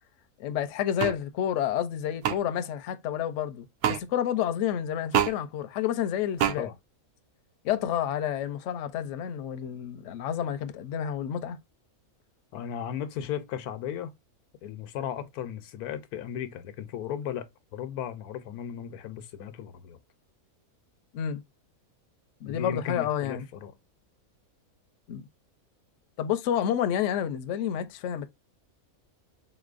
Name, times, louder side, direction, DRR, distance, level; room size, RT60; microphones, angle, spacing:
voice 1, 0.4-6.7 7.6-11.6 21.1-21.4 22.4-23.4 25.1-25.2 26.2-28.3, left 10 dB, 65° left, 0.8 m, -29 dB
sound 1, 1.0-1.2 2.2-2.4 3.8-4.0 5.1-5.3 6.4-6.6, right 10 dB, 80° right, 1.0 m, -24 dB
voice 2, 12.5-14.1 14.6-17.5 17.7-20.0 22.5-23.7, left 9 dB, 90° left, 1.2 m, -36 dB
4.0 x 3.0 x 2.4 m
omnidirectional pair, 1.5 m